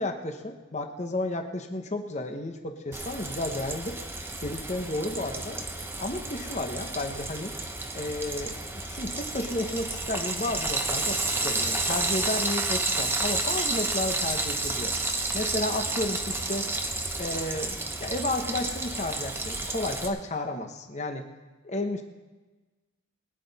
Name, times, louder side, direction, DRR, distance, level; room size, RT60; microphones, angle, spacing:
voice 1, 0.0-4.0 4.4-5.6 6.0-7.5 7.9-8.6 8.9-14.9 15.3-16.7 17.2-21.3 21.6-22.0, left 2 dB, 35° left, 5 dB, 1.0 m, -32 dB
Frying (food), 2.9-20.1, right 2 dB, 10° right, 0.8 m, -31 dB
20.5 x 9.9 x 4.1 m, 1.2 s
head